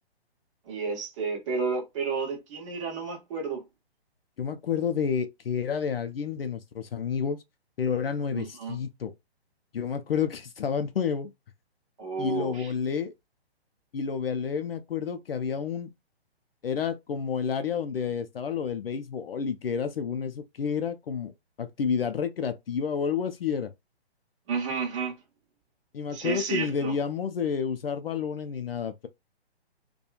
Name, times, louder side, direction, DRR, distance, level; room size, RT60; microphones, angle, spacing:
voice 1, 0.7-3.6 8.3-8.8 12.0-12.7 24.5-25.2 26.1-26.9, right 5 dB, 30° right, 1.0 m, -31 dB
voice 2, 4.4-7.4 7.8-9.1 9.7-11.3 12.2-13.1 13.9-15.9 16.6-21.3 21.6-23.7 25.9-29.1, left 6 dB, 60° left, 0.5 m, -30 dB
2.9 x 2.3 x 2.3 m
figure-of-eight pair, 135°, 32 cm